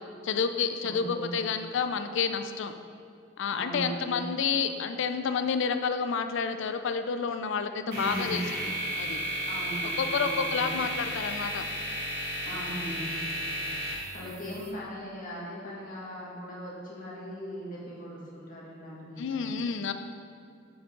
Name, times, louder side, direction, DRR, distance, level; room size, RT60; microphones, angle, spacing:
voice 1, 0.2-2.7 3.4-8.4 9.0-9.2 10.0-11.6 19.2-19.9, left 6 dB, 65° left, 9 dB, 0.4 m, -29 dB
voice 2, 0.8-1.4 3.5-4.2 7.9-8.4 9.5-10.7 12.4-13.1 14.1-19.5, equal, 45° left, -5 dB, 1.9 m, -39 dB
sound 1, 7.9-14.7, equal, 55° right, 2.1 m, -33 dB
8.4 x 7.1 x 3.8 m, 2.5 s
head